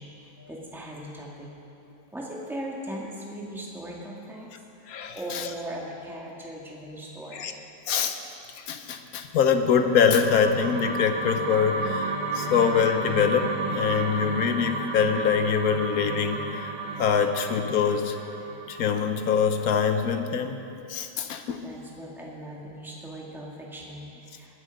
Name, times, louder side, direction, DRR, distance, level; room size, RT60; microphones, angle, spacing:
voice 1, 0.0-1.5 2.1-4.5 4.8-7.4 21.6-24.5, right 1 dB, ahead, -3 dB, 1.7 m, -39 dB
voice 2, 4.9-5.5 7.3-7.5 7.9-8.2 8.6-16.7 17.0-18.2 18.7-20.6 20.9-21.6, left 6 dB, 70° left, 7 dB, 1.2 m, -24 dB
sound 1, 9.5-19.8, right 3 dB, 45° right, 1.1 m, -33 dB
21.0 x 7.9 x 5.2 m, 2.8 s
omnidirectional pair, 1.7 m